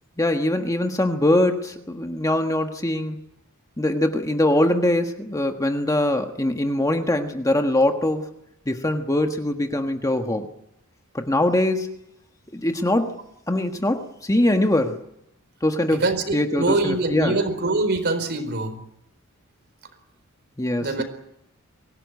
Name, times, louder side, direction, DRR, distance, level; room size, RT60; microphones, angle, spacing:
voice 1, 0.2-3.2 3.8-8.3 8.7-10.5 11.1-11.9 12.5-13.2 13.5-15.0 15.6-16.0 16.3-17.4 20.6-21.0, left 1 dB, 15° left, 5 dB, 1.4 m, -22 dB
voice 2, 15.9-18.8 20.8-21.0, right 2 dB, 50° right, 9 dB, 4.3 m, -24 dB
24.5 x 17.0 x 9.6 m, 0.82 s
head